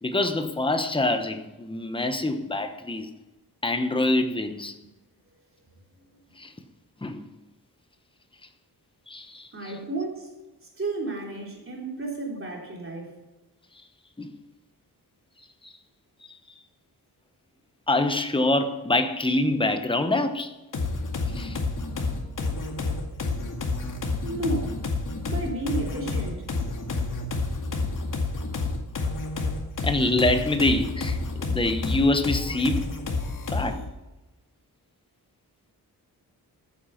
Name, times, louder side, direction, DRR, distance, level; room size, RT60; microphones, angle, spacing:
voice 1, 0.0-3.1 3.6-4.8 6.4-6.5 7.0-7.2 9.1-9.8 14.2-14.4 15.4-15.7 16.3-16.4 17.9-20.6 21.3-21.6 29.8-33.0 33.5-33.8, left 2 dB, 15° left, 8 dB, 1.0 m, -25 dB
voice 2, 9.5-10.3 10.8-13.1 24.2-24.8 25.3-26.4, right 2 dB, 35° right, -1 dB, 3.5 m, -32 dB
sound 1, 20.7-33.9, left 3 dB, 55° left, 2.2 m, -29 dB
14.0 x 9.1 x 5.8 m, 1.1 s
wide cardioid pair, 155°, 37 cm